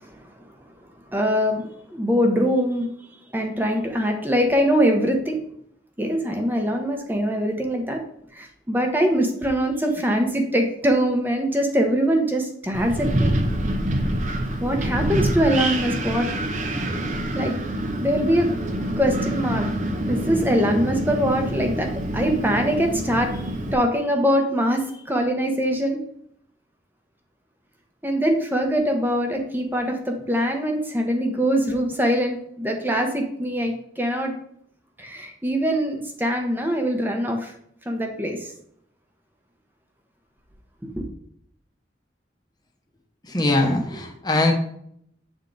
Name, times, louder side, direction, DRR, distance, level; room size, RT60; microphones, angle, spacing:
voice 1, 1.1-2.9 3.3-5.4 6.0-8.0 8.3-13.4 14.6-16.3 16.7-17.0 17.3-17.5 17.9-18.5 19.0-19.7 20.1-23.3 23.7-26.0 28.0-34.3 35.0-37.5 37.9-38.5 41.0-41.1, equal, 10° right, 3 dB, 0.8 m, -23 dB
Wind, 12.7-23.7, right 1 dB, 45° right, 0.6 m, -26 dB
voice 2, 43.2-44.5, left 2 dB, 25° left, 2 dB, 0.9 m, -21 dB
8.0 x 3.6 x 3.9 m, 0.69 s
head